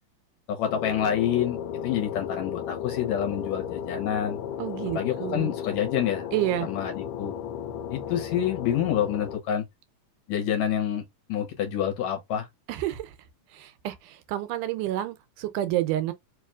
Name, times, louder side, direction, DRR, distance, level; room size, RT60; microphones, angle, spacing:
voice 1, 0.5-1.6 1.8-4.4 4.9-6.3 6.6-7.4 7.9-9.7 10.3-11.0 11.3-12.5, left 9 dB, 65° left, 2.1 m, -27 dB
sound 1, 0.7-9.4, left 9 dB, 90° left, 2.2 m, -34 dB
voice 2, 4.6-5.5 6.3-6.7 12.7-13.1 13.5-16.1, right 14 dB, 80° right, 2.1 m, -29 dB
4.7 x 3.0 x 2.3 m
omnidirectional pair, 3.7 m